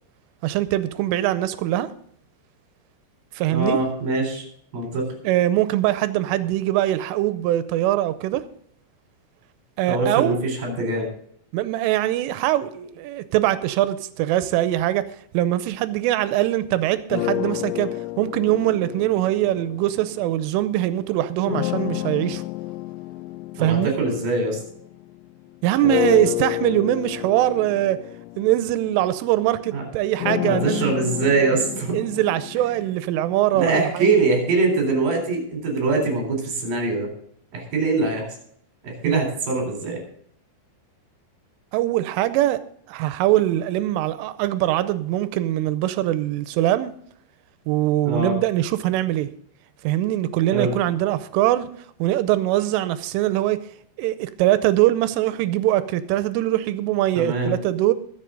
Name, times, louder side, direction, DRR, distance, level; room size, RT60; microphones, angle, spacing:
voice 1, 0.4-1.9 3.4-3.8 5.2-8.5 9.8-10.4 11.5-15.0 15.3-17.9 18.2-22.4 23.6-23.9 25.6-28.0 28.4-31.0 31.9-34.1 39.0-39.2 41.7-42.6 42.9-46.9 47.7-49.3 49.8-51.7 52.0-53.6 54.0-57.9, right 14 dB, 85° right, 3.1 m, -22 dB
voice 2, 3.5-4.4 4.7-5.1 9.9-11.1 23.6-24.6 29.7-29.9 30.5-32.0 33.5-37.1 37.5-38.3 38.8-40.0 48.1-48.4 50.5-50.7 57.2-57.5, right 3 dB, 50° right, 5.4 m, -23 dB
sound 1, 17.1-20.7 21.5-25.3 25.8-33.8, left 18 dB, 85° left, 2.6 m, -30 dB
21.5 x 7.4 x 3.8 m
omnidirectional pair, 5.8 m